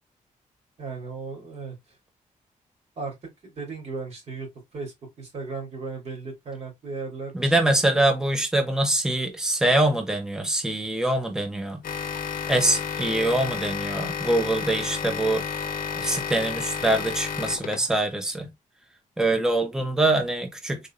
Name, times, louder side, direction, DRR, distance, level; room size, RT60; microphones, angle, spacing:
voice 1, 0.8-1.8 3.0-3.2 3.4-8.0 14.9-15.0, right 4 dB, 50° right, 2.6 m, -36 dB
voice 2, 7.3-11.8 12.5-15.4 16.0-18.5 19.2-20.8, right 1 dB, 5° right, 0.8 m, -24 dB
sound 1, 11.8-18.0, left 7 dB, 85° left, 0.7 m, -31 dB
3.9 x 3.4 x 2.4 m
wide cardioid pair, 150°, 14 cm